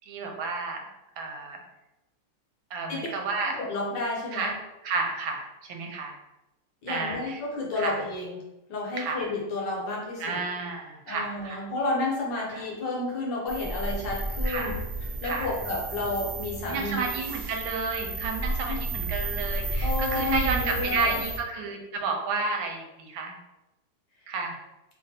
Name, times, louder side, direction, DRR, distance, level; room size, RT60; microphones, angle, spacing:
voice 1, 0.1-0.9 1.2-1.6 2.7-3.6 4.3-4.5 4.8-6.1 6.9-7.4 7.8-8.0 9.0-9.2 10.2-11.7 12.5-12.6 14.4-14.8 15.2-15.5 16.7-23.4 24.3-24.6, right 4 dB, 75° right, 2 dB, 1.3 m, -31 dB
voice 2, 3.5-4.5 6.8-8.3 8.7-10.4 11.1-14.8 15.2-17.0 18.7-18.8 19.8-21.2, left 2 dB, 65° left, -2 dB, 1.4 m, -31 dB
sound 1, 13.5-21.4, right 2 dB, 5° left, 0.8 m, -32 dB
3.4 x 2.5 x 4.0 m, 0.97 s
omnidirectional pair, 2.3 m